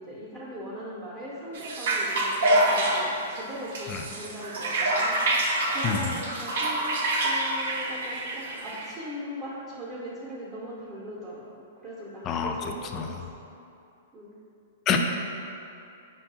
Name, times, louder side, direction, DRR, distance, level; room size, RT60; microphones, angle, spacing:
voice 1, 0.0-13.1 14.1-14.3, equal, 25° right, -10 dB, 0.7 m, -40 dB
sound 1, 1.5-8.9, right 1 dB, 70° right, 0.5 m, -26 dB
voice 2, 5.8-6.2 12.2-13.3 14.9-15.0, left 6 dB, 30° left, 4 dB, 0.3 m, -28 dB
5.2 x 2.3 x 2.6 m, 2.6 s
hypercardioid pair, 130°, 0 cm